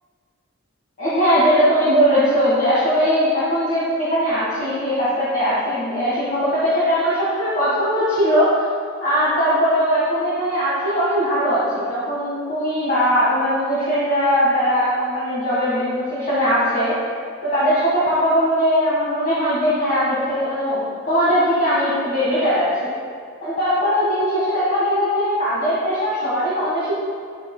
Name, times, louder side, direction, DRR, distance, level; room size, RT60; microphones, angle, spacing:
voice 1, 1.0-8.5 9.0-16.9 17.4-22.9 23.4-27.0, equal, 40° left, -10 dB, 1.6 m, -20 dB
9.8 x 8.1 x 2.2 m, 2.1 s
head